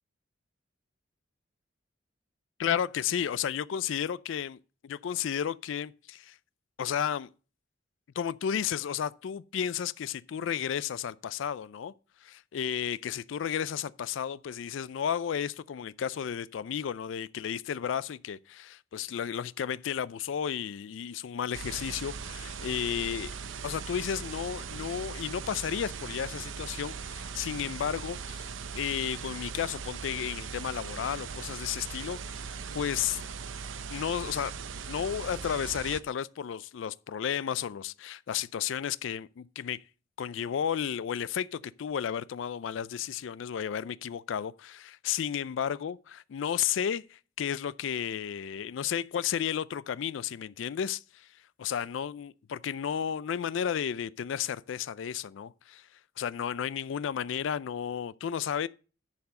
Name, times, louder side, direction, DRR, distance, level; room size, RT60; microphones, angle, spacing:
voice 1, 2.6-6.4 6.8-7.3 8.2-11.9 12.2-23.3 23.6-33.2 33.9-34.5 34.9-39.8 40.2-51.3 51.6-55.9 56.2-58.7, left 8 dB, 75° left, 0.4 m, -33 dB
sound 1, 21.5-36.0, right 6 dB, 75° right, 0.7 m, -39 dB
10.5 x 4.7 x 6.3 m
head